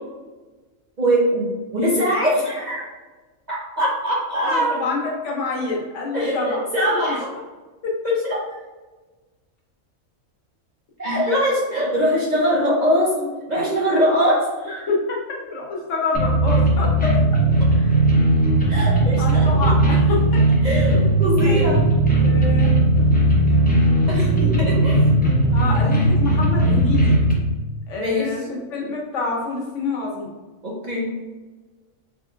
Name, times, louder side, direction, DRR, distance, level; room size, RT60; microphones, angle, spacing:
voice 1, 1.0-2.9 3.5-4.9 6.1-7.3 8.2-8.4 11.0-14.8 18.7-19.7 20.6-21.8 23.9-25.0 28.0-28.6 30.6-31.1, equal, 40° right, -6 dB, 0.8 m, -22 dB
voice 2, 4.5-6.7 6.9-7.0 7.8-7.9 14.9-15.2 15.5-17.2 17.7-18.0 19.2-20.8 21.5-21.8 22.2-22.8 25.5-27.2 27.9-30.3, left 3 dB, 65° left, -1 dB, 1.1 m, -27 dB
sound 1, 16.1-27.3, right 1 dB, 10° left, 0.6 m, -17 dB
3.7 x 3.4 x 2.4 m, 1.2 s
omnidirectional pair, 1.4 m